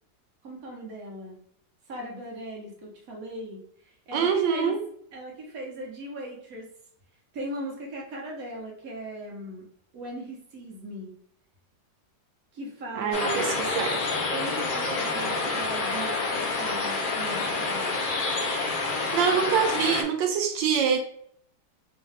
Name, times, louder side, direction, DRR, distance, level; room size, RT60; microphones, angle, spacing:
voice 1, 0.4-1.4 1.9-3.6 4.1-4.8 5.1-6.7 7.3-9.6 9.9-11.1 12.5-13.5 14.3-18.0, right 1 dB, 55° right, -2 dB, 1.5 m, -38 dB
voice 2, 4.1-4.8 12.9-14.0 18.9-21.0, right 7 dB, 85° right, 4 dB, 1.3 m, -25 dB
sound 1, 13.1-20.0, left 3 dB, 55° left, 0.5 m, -28 dB
3.6 x 3.0 x 3.5 m, 0.66 s
omnidirectional pair, 2.0 m